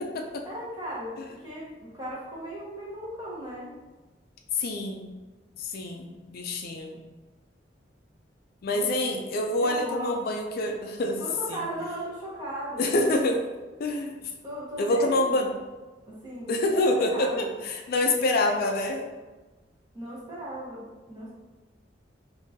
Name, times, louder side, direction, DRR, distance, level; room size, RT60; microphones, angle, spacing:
voice 1, 0.4-3.7 8.7-9.3 9.6-10.2 11.2-12.9 14.4-15.5 16.1-16.6 16.9-17.5 19.9-21.3, right 1 dB, 25° right, -6 dB, 1.0 m, -37 dB
voice 2, 4.5-5.1 5.6-7.0 8.6-11.2 11.5-11.6 12.8-13.4 13.8-14.3 14.8-15.5 16.5-19.1, left 2 dB, 55° left, 3 dB, 0.4 m, -26 dB
3.7 x 2.6 x 2.6 m, 1.2 s
head